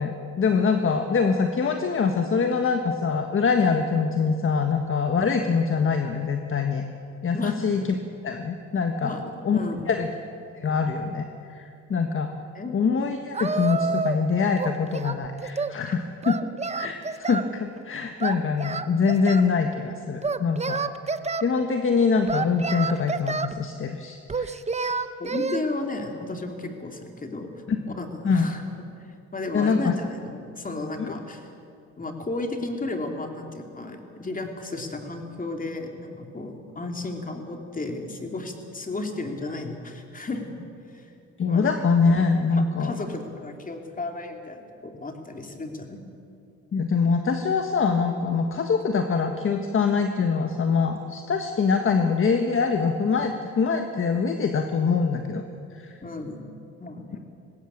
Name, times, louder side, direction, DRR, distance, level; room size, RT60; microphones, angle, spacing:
voice 1, 0.0-6.8 7.2-7.8 8.2-9.1 9.4-9.6 9.9-10.1 10.5-12.3 12.7-16.4 16.8-20.8 21.4-24.9 27.7-27.9 28.2-28.5 29.5-29.9 31.0-31.1 41.4-42.9 46.7-55.4 55.7-55.9, left 5 dB, 45° left, 5 dB, 1.5 m, -24 dB
voice 2, 7.3-7.9 9.0-9.9 12.5-12.8 15.8-15.9 25.2-27.5 27.9-28.9 29.3-31.5 32.0-40.5 40.9-41.1 41.4-41.7 42.5-46.0 56.0-56.4 56.8-57.2, left 2 dB, 25° left, 4 dB, 3.1 m, -34 dB
Singing, 13.3-14.3 14.6-15.8 16.2-17.5 18.2-19.5 20.2-21.5 22.3-23.6 24.3-25.6, right 4 dB, 20° right, 0.9 m, -29 dB
20.0 x 17.0 x 8.8 m, 2.5 s
cardioid pair, 90°, 30 cm